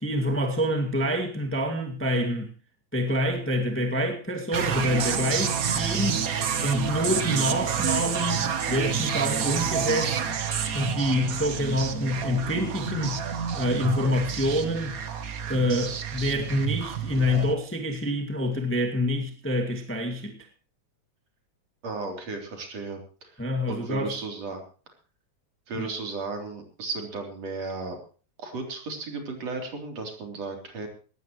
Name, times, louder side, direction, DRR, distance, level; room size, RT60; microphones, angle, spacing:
voice 1, 0.0-2.5 2.9-6.2 6.6-10.2 10.7-13.2 13.5-15.0 15.5-20.4 23.4-24.1 25.7-25.9, left 1 dB, 5° left, 1.6 m, -27 dB
sound 1, 4.5-17.5, right 7 dB, 75° right, 0.8 m, -29 dB
voice 2, 21.8-24.6 25.7-28.0 28.4-30.9, right 3 dB, 60° right, 4.5 m, -35 dB
18.5 x 16.0 x 3.1 m
omnidirectional pair, 3.3 m